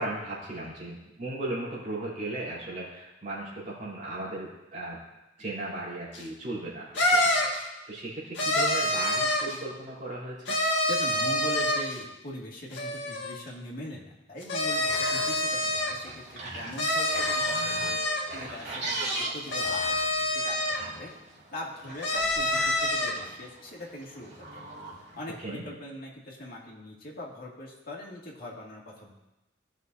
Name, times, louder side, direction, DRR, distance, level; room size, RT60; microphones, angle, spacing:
voice 1, 0.0-5.0 5.4-7.5 7.9-10.6 25.4-25.6, right 2 dB, 40° right, -8 dB, 3.4 m, -36 dB
sound 1, 6.1-6.2 6.9-7.6 8.3-9.6 10.5-12.0 12.7-13.4 14.4-15.9 16.8-18.2 19.5-20.8 22.0-23.1, left 1 dB, 70° left, 1.9 m, -27 dB
voice 2, 10.9-18.0 18.3-20.6 20.9-21.1 21.5-24.4 25.2-29.1, left 1 dB, 55° left, -3 dB, 2.1 m, -41 dB
sound 2, 14.6-25.4, right 2 dB, 65° right, 2.5 m, -40 dB
16.5 x 6.2 x 2.7 m, 1.0 s
head